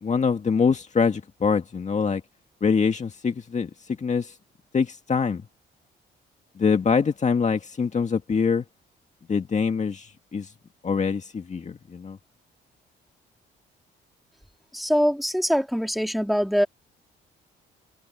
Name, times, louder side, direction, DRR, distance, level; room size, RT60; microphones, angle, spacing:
voice 1, 0.0-2.2 2.6-4.3 4.7-5.4 6.6-8.7 9.3-10.5 10.8-12.2, left 5 dB, 35° left, 1.9 m, -24 dB
voice 2, 14.7-16.7, equal, ahead, 3.8 m, -23 dB
cardioid pair, 90°, 20 cm